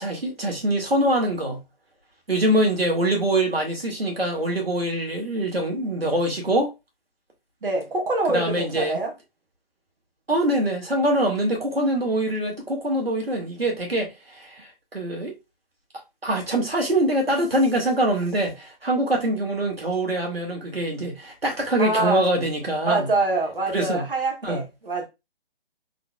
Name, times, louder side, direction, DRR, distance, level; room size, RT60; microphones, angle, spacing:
voice 1, 0.0-1.6 2.3-6.7 8.3-9.0 10.3-15.3 16.2-23.1 23.7-24.0 24.4-24.6, right 1 dB, 85° right, 2.1 m, -24 dB
voice 2, 7.6-9.1 21.8-22.3 22.9-25.1, right 2 dB, 65° right, 1.8 m, -25 dB
3.9 x 3.8 x 2.4 m
figure-of-eight pair, 140°, 29 cm